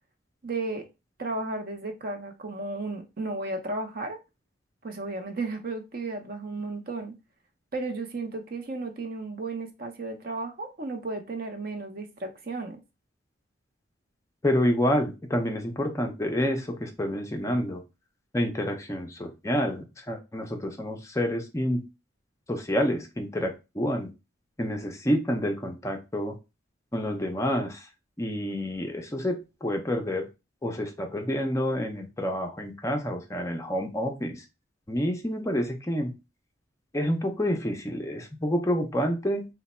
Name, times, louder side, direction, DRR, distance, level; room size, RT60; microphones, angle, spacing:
voice 1, 0.4-0.8 1.2-4.2 4.8-7.1 7.7-12.8, right 3 dB, 45° right, 0.6 m, -34 dB
voice 2, 14.4-17.8 18.3-21.8 22.5-24.1 24.6-26.3 26.9-27.9 28.2-30.3 30.6-34.4 34.9-36.1 36.9-39.5, equal, 15° left, 0.4 m, -28 dB
3.2 x 2.1 x 4.1 m
head